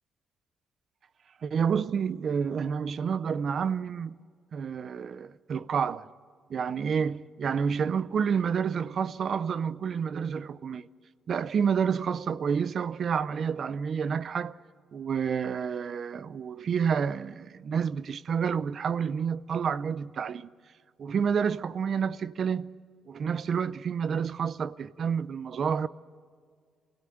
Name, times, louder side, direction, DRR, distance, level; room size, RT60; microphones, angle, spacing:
voice 1, 1.4-4.2 4.5-6.1 6.5-10.9 11.3-14.6 14.9-20.5 21.0-22.7 23.1-25.9, right 6 dB, 40° right, 0.5 m, -29 dB
27.0 x 17.5 x 7.9 m
cardioid pair, 170°, 0 cm